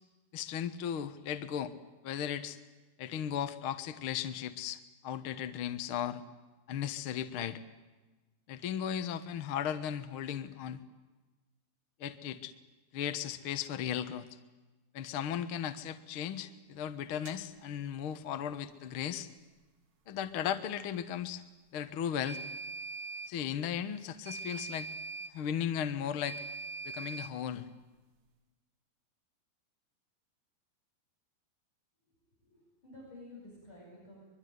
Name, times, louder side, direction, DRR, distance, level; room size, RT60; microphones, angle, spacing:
voice 1, 0.3-1.7 2.0-2.6 3.0-6.2 6.7-7.6 8.5-10.8 12.0-12.5 12.9-14.2 14.9-19.3 20.1-21.4 21.7-22.4 23.3-24.9 25.3-26.4 26.8-27.7, left 9 dB, 65° left, 9 dB, 1.3 m, -36 dB
sound 1, 17.3-17.4 22.3-23.3 24.2-25.3 26.2-27.3, right 3 dB, 80° right, 0.8 m, -42 dB
voice 2, 32.3-34.2, left 1 dB, 30° left, -4 dB, 8.3 m, -52 dB
24.0 x 22.5 x 9.5 m, 1.2 s
omnidirectional pair, 4.3 m